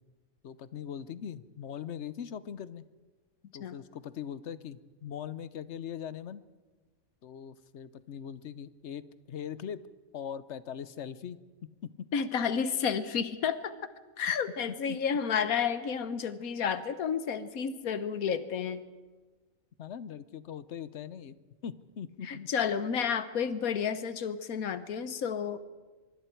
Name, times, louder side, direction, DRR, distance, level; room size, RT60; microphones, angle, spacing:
voice 1, 0.4-2.9 3.5-6.4 7.2-9.8 10.1-11.4 11.8-12.1 14.7-15.0 19.8-21.4 21.6-22.5, left 8 dB, 60° left, 15 dB, 1.0 m, -41 dB
voice 2, 12.1-13.7 14.2-18.8 22.2-25.6, left 7 dB, 85° left, 12 dB, 1.4 m, -31 dB
25.0 x 23.0 x 4.5 m, 1.3 s
omnidirectional pair, 1.5 m